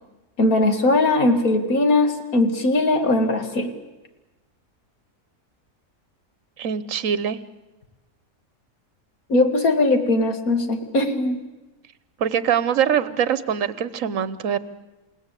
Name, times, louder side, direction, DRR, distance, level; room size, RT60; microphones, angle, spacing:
voice 1, 0.4-3.7 9.3-11.4, left 2 dB, 85° left, 6 dB, 2.6 m, -20 dB
voice 2, 6.6-7.4 12.2-14.6, right 8 dB, 70° right, 15 dB, 1.4 m, -23 dB
28.5 x 18.0 x 8.3 m, 1.1 s
omnidirectional pair, 1.5 m